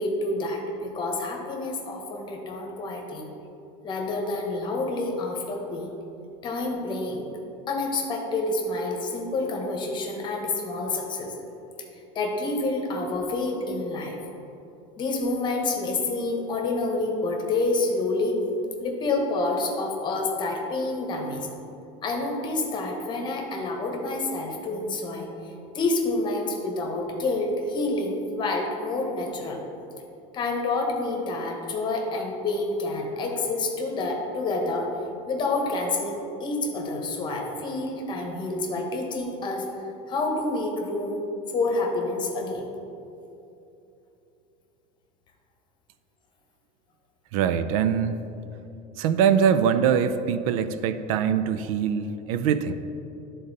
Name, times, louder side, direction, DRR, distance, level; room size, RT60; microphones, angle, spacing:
voice 1, 0.0-3.3 3.8-5.9 6.4-7.3 7.7-11.3 12.1-14.2 15.0-18.3 18.8-21.5 22.0-29.6 30.3-34.9 35.3-39.7 40.1-42.6, left 2 dB, 25° left, 1 dB, 1.0 m, -28 dB
voice 2, 47.3-48.2 49.0-52.7, right 8 dB, 90° right, 11 dB, 0.4 m, -23 dB
11.5 x 3.9 x 4.0 m, 2.8 s
cardioid pair, 155°, 17 cm